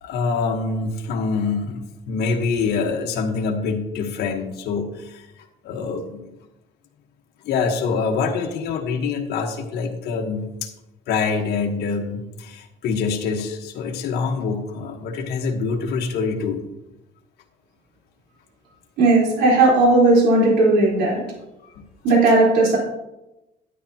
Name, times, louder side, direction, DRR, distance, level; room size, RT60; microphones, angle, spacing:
voice 1, 0.0-5.2 5.6-6.2 7.4-10.7 11.1-16.6 21.7-21.8, left 4 dB, 75° left, 2 dB, 1.2 m, -25 dB
voice 2, 19.0-21.2 22.0-22.8, right 2 dB, 80° right, -4 dB, 4.0 m, -16 dB
11.5 x 10.0 x 2.9 m, 0.94 s
cardioid pair, 110°, 17 cm